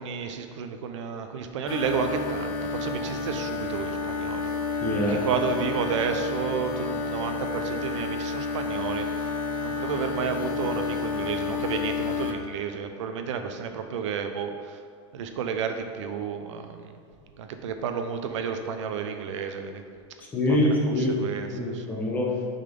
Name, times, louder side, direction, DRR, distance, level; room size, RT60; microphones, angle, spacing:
voice 1, 0.0-4.5 5.1-14.8 15.1-17.0 17.4-19.8 20.5-20.6 21.2-21.8, right 6 dB, 85° right, 6 dB, 0.7 m, -31 dB
sound 1, 1.7-12.4, left 4 dB, 50° left, 0.7 m, -30 dB
voice 2, 4.8-5.2 20.3-22.5, left 1 dB, 10° left, -2 dB, 0.9 m, -25 dB
6.5 x 4.1 x 5.2 m, 2.1 s
supercardioid pair, 160°, 15 cm